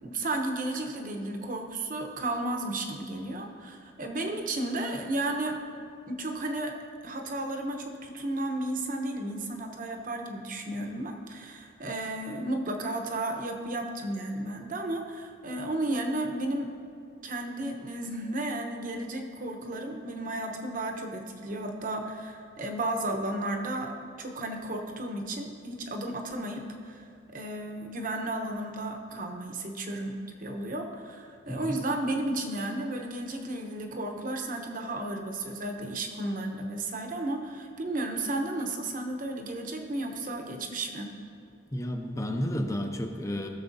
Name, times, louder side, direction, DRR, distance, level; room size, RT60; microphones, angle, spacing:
voice 1, 0.0-5.6 6.1-6.7 7.0-16.7 17.2-41.1, right 1 dB, 45° right, 3 dB, 1.0 m, -33 dB
voice 2, 41.7-43.5, equal, 15° left, 4 dB, 0.7 m, -31 dB
17.0 x 6.8 x 2.7 m, 2.4 s
head